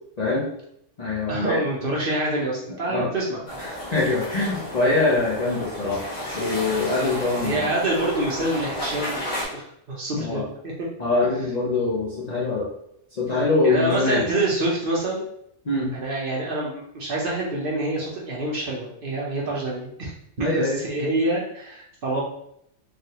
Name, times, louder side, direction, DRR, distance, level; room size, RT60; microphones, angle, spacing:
voice 1, 0.2-0.5 1.0-1.7 2.9-3.1 3.9-6.0 6.3-7.7 10.1-10.4 11.0-12.7 13.1-14.2 15.6-15.9 20.4-20.8, left 3 dB, 45° left, -6 dB, 0.6 m, -23 dB
voice 2, 1.3-3.4 7.4-10.9 13.6-15.3 15.9-20.1 20.4-22.2, right 2 dB, 55° right, -3 dB, 0.8 m, -27 dB
sound 1, 3.5-9.4, equal, 85° left, 1.5 m, -32 dB
3.3 x 2.3 x 2.8 m, 0.72 s
omnidirectional pair, 1.3 m